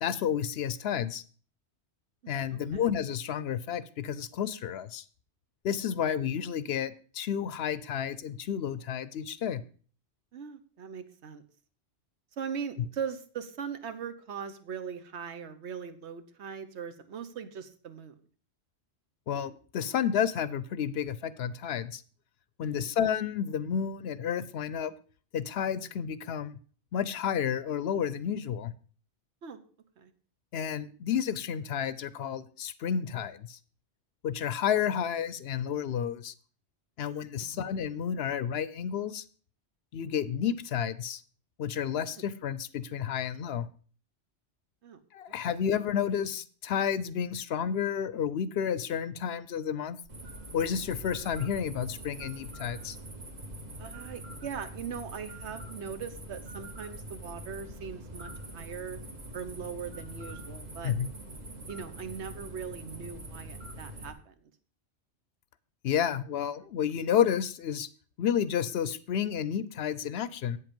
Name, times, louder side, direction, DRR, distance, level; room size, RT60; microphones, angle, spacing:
voice 1, 0.0-1.2 2.3-5.0 5.6-9.6 19.3-22.0 22.6-24.9 25.3-26.5 26.9-28.7 30.5-33.6 34.2-36.3 37.0-39.2 39.9-41.2 41.6-43.7 45.1-50.0 50.5-53.0 60.8-61.1 65.8-67.9 68.2-70.6, left 8 dB, 65° left, 16 dB, 0.8 m, -31 dB
voice 2, 2.2-2.8 10.3-11.4 12.4-18.1 22.6-22.9 29.4-29.6 30.0-30.1 37.4-37.7 44.8-45.0 53.8-59.0 59.3-60.9 61.7-64.3, right 7 dB, 75° right, 11 dB, 1.2 m, -40 dB
sound 1, 50.1-64.1, right 1 dB, 40° right, 1.4 m, -44 dB
8.3 x 7.8 x 5.2 m, 0.42 s
omnidirectional pair, 1.2 m